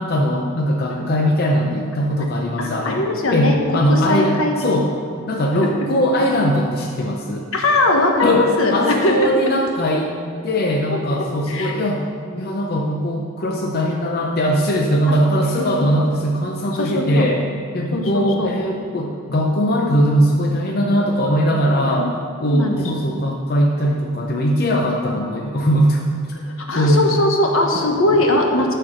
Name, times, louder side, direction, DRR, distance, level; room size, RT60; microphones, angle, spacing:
voice 1, 0.0-3.0 3.3-4.9 5.3-7.5 8.2-10.1 10.4-12.0 12.4-17.4 17.7-22.1 22.4-26.1 26.7-27.1 27.7-27.8 28.1-28.2, equal, 50° left, 0 dB, 0.6 m, -20 dB
voice 2, 2.6-4.7 5.6-5.9 7.5-9.4 10.9-11.0 11.5-11.8 12.3-12.5 15.6-15.7 15.9-16.0 16.8-17.3 17.9-18.5 21.7-22.1 22.4-22.9 26.7-28.7, left 2 dB, 80° left, 2 dB, 1.2 m, -20 dB
10.0 x 4.5 x 6.3 m, 2.3 s
head